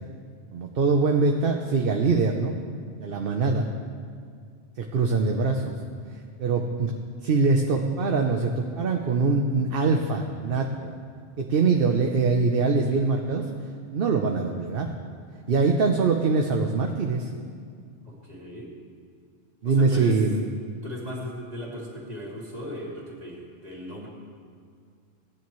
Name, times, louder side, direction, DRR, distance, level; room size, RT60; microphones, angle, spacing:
voice 1, 0.5-2.6 3.0-3.7 4.8-5.7 6.4-6.9 7.2-10.9 11.4-13.4 13.9-14.9 15.5-17.3 19.6-20.4, right 4 dB, 55° right, 3 dB, 0.9 m, -23 dB
voice 2, 18.0-18.7 19.6-20.2 20.8-24.1, left 1 dB, 35° right, -4 dB, 2.7 m, -37 dB
17.5 x 10.0 x 3.1 m, 2.2 s
omnidirectional pair, 1.2 m